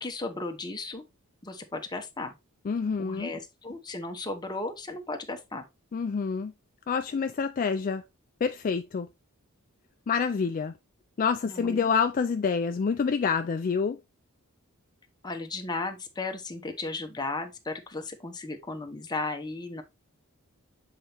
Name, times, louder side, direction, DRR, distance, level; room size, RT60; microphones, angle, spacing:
voice 1, 0.0-1.0 1.4-2.3 3.0-5.6 11.4-11.9 15.2-19.8, left 3 dB, 20° left, 0.9 m, -35 dB
voice 2, 2.6-3.3 5.9-6.5 6.9-8.0 8.4-9.1 10.1-10.7 11.2-14.0, left 5 dB, 40° left, 0.3 m, -27 dB
7.5 x 4.1 x 3.3 m
head